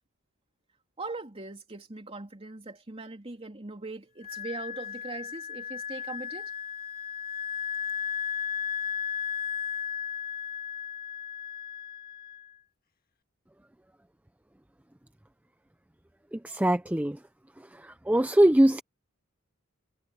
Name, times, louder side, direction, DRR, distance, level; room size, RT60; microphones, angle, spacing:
voice 1, 1.0-6.5, right 3 dB, 30° right, 3.1 m, -40 dB
Wind instrument woodwind instrument, 4.2-12.5, left 7 dB, 45° left, 1.8 m, -35 dB
voice 2, 16.3-17.2 18.1-18.8, right 1 dB, 5° right, 0.5 m, -22 dB
head